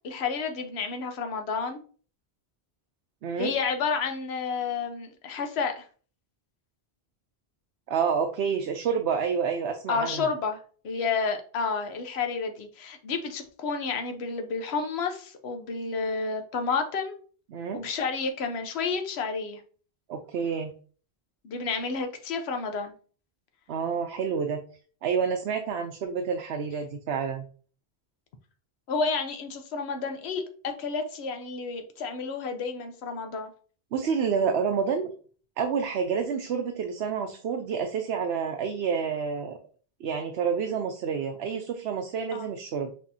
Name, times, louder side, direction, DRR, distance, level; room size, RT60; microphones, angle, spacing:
voice 1, 0.0-1.8 3.4-5.9 9.9-17.2 17.7-19.6 21.4-22.9 28.9-33.5 42.3-42.5, left 5 dB, 85° left, 6 dB, 1.0 m, -30 dB
voice 2, 3.2-3.5 7.9-10.3 17.5-17.8 20.1-20.7 23.7-24.6 25.0-27.5 33.9-35.1 35.6-39.6 40.0-42.9, right 6 dB, 85° right, 5 dB, 0.9 m, -28 dB
6.5 x 2.8 x 2.7 m, 0.41 s
omnidirectional pair, 1.1 m